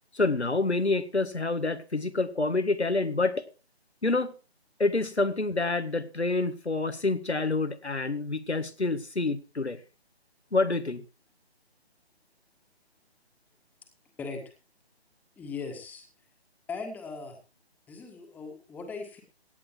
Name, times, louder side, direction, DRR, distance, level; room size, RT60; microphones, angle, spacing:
voice 1, 0.1-3.5 4.0-4.3 4.8-9.8 10.5-11.1, left 3 dB, 90° left, 2.0 m, -27 dB
voice 2, 15.4-16.1 16.7-17.4 17.9-19.2, left 4 dB, 5° left, 1.6 m, -38 dB
17.0 x 10.0 x 4.6 m
figure-of-eight pair, 150°, 32 cm